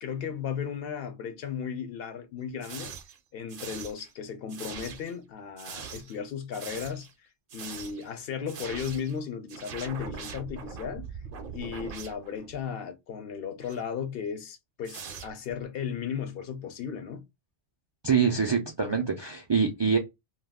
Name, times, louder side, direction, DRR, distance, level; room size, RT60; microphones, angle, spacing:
voice 1, 0.0-2.9 3.3-11.2 11.5-17.3, left 7 dB, 65° left, 0.8 m, -35 dB
sound 1, 2.6-3.2 3.5-4.1 4.5-5.2 5.6-6.2 6.5-7.1 7.5-8.1 8.5-9.2 9.5-12.6 13.6-13.8 14.8-15.6, right 6 dB, 60° right, 0.7 m, -42 dB
voice 2, 18.0-20.0, right 6 dB, 45° right, 0.3 m, -25 dB
2.3 x 2.2 x 3.4 m
omnidirectional pair, 1.1 m